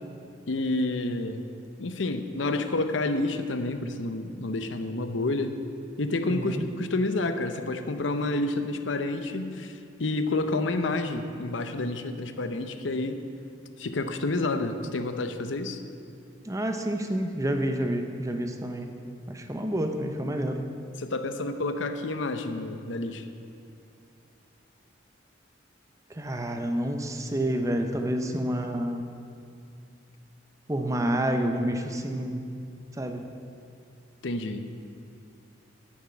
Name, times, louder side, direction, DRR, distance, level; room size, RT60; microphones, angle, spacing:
voice 1, 0.5-1.4 1.8-5.6 6.0-13.2 13.8-15.8 21.0-23.3 34.2-34.6, left 2 dB, 80° left, 9 dB, 0.8 m, -29 dB
voice 2, 6.2-6.6 16.4-19.0 19.3-20.7 26.1-29.1 30.7-32.5 32.9-33.3, right 1 dB, 15° right, 5 dB, 0.8 m, -29 dB
11.0 x 7.3 x 8.6 m, 2.5 s
head